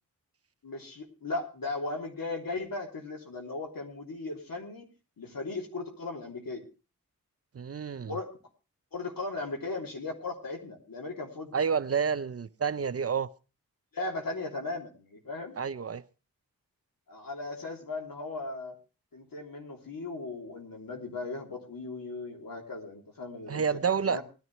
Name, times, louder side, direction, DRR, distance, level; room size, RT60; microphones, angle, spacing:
voice 1, 0.6-4.9 5.2-6.6 8.1-8.3 8.9-11.6 13.9-15.6 17.1-18.8 19.1-24.2, left 3 dB, 70° left, 3.2 m, -37 dB
voice 2, 7.5-8.1 11.5-13.3 15.6-16.0 23.5-24.2, right 6 dB, 40° right, 0.6 m, -29 dB
20.0 x 11.0 x 3.1 m
cardioid pair, 50°, 35 cm